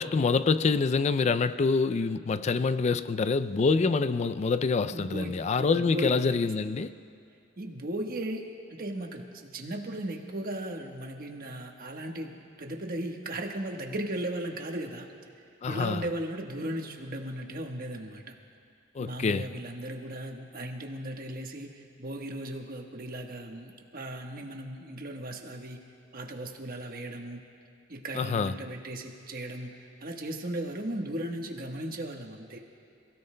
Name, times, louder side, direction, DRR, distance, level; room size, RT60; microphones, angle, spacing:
voice 1, 0.0-6.9 15.6-16.0 19.0-19.5 28.1-28.5, left 4 dB, 35° left, 0.3 m, -26 dB
voice 2, 4.9-6.5 7.6-8.4 8.7-15.1 15.7-18.3 19.0-25.8 26.1-27.4 27.9-32.6, right 1 dB, 50° right, 1.3 m, -36 dB
28.0 x 16.5 x 2.2 m
head